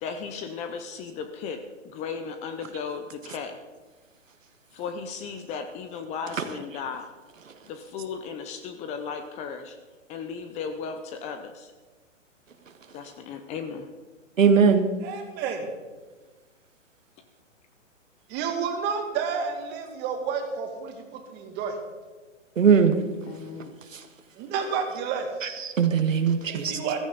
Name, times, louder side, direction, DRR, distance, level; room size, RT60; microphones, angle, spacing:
voice 1, 0.0-3.6 4.7-7.1 7.7-9.8 10.1-11.7 12.9-13.9 23.3-23.7, left 6 dB, 20° left, 8 dB, 0.7 m, -36 dB
voice 2, 14.4-14.9 22.6-23.0 23.9-24.0 25.4-26.8, right 6 dB, 80° right, 7 dB, 1.7 m, -20 dB
voice 3, 15.0-15.7 18.3-21.8 24.4-25.3 26.4-27.0, right 6 dB, 25° right, 4 dB, 2.3 m, -30 dB
15.0 x 14.0 x 4.0 m, 1.3 s
hypercardioid pair, 130°, 38 cm